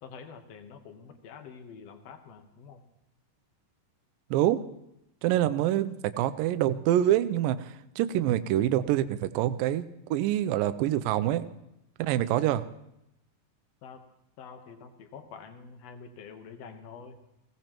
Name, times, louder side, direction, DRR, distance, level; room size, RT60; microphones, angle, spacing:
voice 1, 0.0-2.8 13.8-14.0 14.4-17.2, left 6 dB, 70° left, 7 dB, 1.6 m, -47 dB
voice 2, 5.2-9.9 10.1-11.5 12.0-12.6, right 12 dB, 80° right, 12 dB, 2.1 m, -26 dB
20.5 x 16.5 x 3.0 m, 0.83 s
omnidirectional pair, 4.4 m